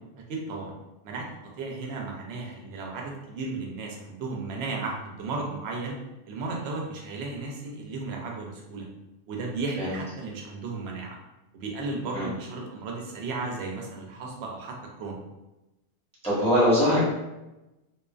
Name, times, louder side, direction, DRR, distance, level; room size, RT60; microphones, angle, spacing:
voice 1, 0.3-0.8 1.0-1.3 1.6-6.0 6.3-8.9 9.3-11.2 11.5-15.2, right 3 dB, 75° right, 0 dB, 0.8 m, -34 dB
voice 2, 16.2-17.0, equal, 5° left, -9 dB, 0.7 m, -22 dB
2.4 x 2.3 x 2.3 m, 1.0 s
omnidirectional pair, 1.1 m